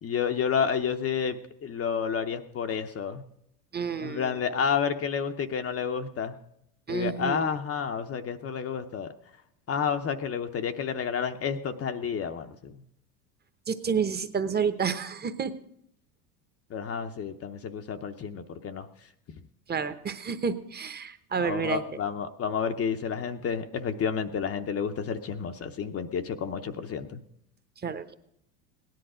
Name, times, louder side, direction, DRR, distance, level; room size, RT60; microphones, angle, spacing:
voice 1, 0.0-3.2 4.0-6.3 6.9-9.1 9.7-12.7 16.7-18.9 21.4-27.2, left 7 dB, 30° left, 7 dB, 0.7 m, -30 dB
voice 2, 3.7-4.3 6.9-7.6 13.7-15.5 19.7-21.8 27.8-28.1, right 6 dB, 20° right, 10 dB, 1.0 m, -30 dB
17.0 x 10.5 x 4.9 m, 0.76 s
supercardioid pair, 110°, 49 cm